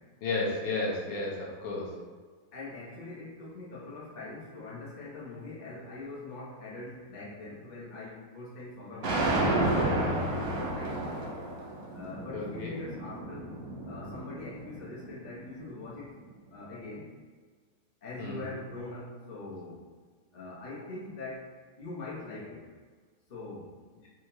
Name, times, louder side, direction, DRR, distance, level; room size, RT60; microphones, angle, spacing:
voice 1, 0.2-1.9 12.3-12.7 18.2-18.5, left 2 dB, 75° left, -4 dB, 1.5 m, -32 dB
voice 2, 2.5-9.3 9.8-11.2 11.9-13.5 13.9-16.2 16.5-17.0 18.0-19.8 20.3-21.5 21.8-22.6 23.3-23.8, left 2 dB, 45° left, -8 dB, 0.5 m, -42 dB
sound 1, 9.0-15.2, right 2 dB, 65° right, 0.9 m, -31 dB
4.3 x 2.4 x 2.9 m, 1.5 s
omnidirectional pair, 2.3 m